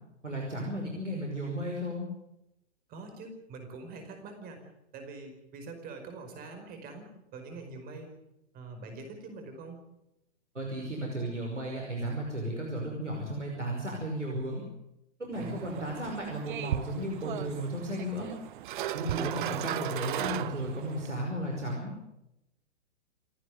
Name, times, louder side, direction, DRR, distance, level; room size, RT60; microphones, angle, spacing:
voice 1, 0.2-2.1 10.5-14.6 15.2-18.3 18.9-21.9, right 1 dB, 90° right, 0 dB, 5.6 m, -34 dB
voice 2, 2.9-8.1 8.5-9.8 15.4-15.8 19.0-19.6, right 3 dB, 25° right, 5 dB, 5.0 m, -44 dB
sound 1, 15.3-21.1, right 12 dB, 45° right, 1.0 m, -36 dB
29.0 x 10.0 x 9.5 m, 0.89 s
figure-of-eight pair, 120°, 35 cm